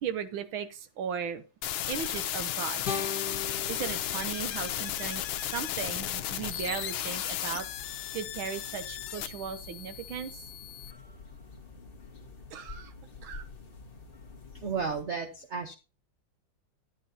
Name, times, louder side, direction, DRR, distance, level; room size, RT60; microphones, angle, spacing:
voice 1, 0.0-1.4 1.9-2.9 3.7-7.7 8.1-10.4 12.5-12.9 13.2-13.4, right 7 dB, 80° right, 11 dB, 1.6 m, -37 dB
sound 1, 1.6-10.9, left 12 dB, 90° left, 1.5 m, -35 dB
sound 2, 2.8-5.9, left 6 dB, 55° left, 1.9 m, -39 dB
sound 3, 3.2-15.0, left 4 dB, 30° left, 1.3 m, -49 dB
voice 2, 14.5-15.7, right 5 dB, 50° right, 4 dB, 0.9 m, -33 dB
11.0 x 9.5 x 2.7 m, 0.30 s
omnidirectional pair, 2.2 m